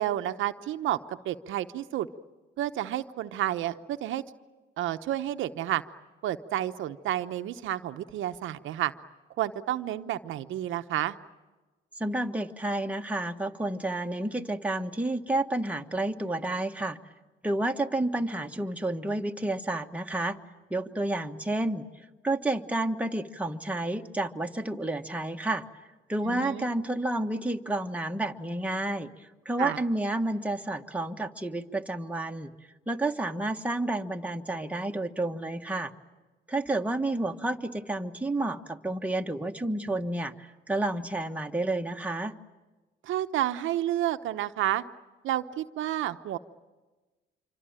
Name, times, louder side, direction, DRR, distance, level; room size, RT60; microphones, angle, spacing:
voice 1, 0.0-2.1 2.6-4.2 4.8-5.8 6.2-8.9 9.4-11.1 26.2-26.7 29.6-29.8 43.0-44.8 45.2-46.4, right 13 dB, 80° right, 9 dB, 0.9 m, -30 dB
voice 2, 12.0-17.0 17.4-20.4 20.7-21.8 22.2-25.6 26.1-29.1 29.4-32.5 32.9-35.9 36.5-42.3, right 2 dB, 5° right, 3 dB, 1.5 m, -30 dB
26.5 x 25.0 x 8.9 m, 1.2 s
cardioid pair, 90°, 20 cm